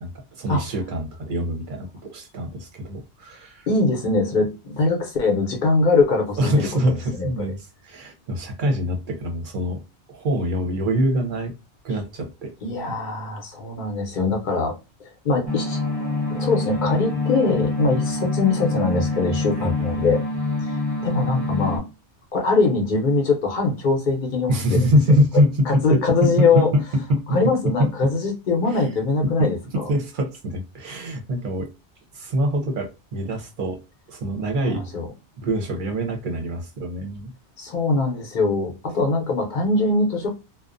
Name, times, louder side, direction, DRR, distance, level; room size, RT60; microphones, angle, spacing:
voice 1, 0.0-3.7 6.4-9.8 10.1-11.5 11.8-12.5 19.6-19.7 24.5-25.8 26.2-27.2 27.8-27.9 28.7-28.9 29.4-31.7 32.1-33.8 34.1-34.8 35.4-37.3, equal, 50° right, 0.7 m, -24 dB
voice 2, 3.7-6.5 7.2-7.3 12.6-14.7 15.2-15.8 16.3-20.2 20.7-21.8 22.3-24.8 25.7-26.7 27.3-29.8 34.6-35.1 37.6-40.3, left 3 dB, 50° left, 0.8 m, -22 dB
sound 1, 15.5-21.8, left 2 dB, 20° right, 0.9 m, -26 dB
2.4 x 2.1 x 2.4 m
omnidirectional pair, 1.2 m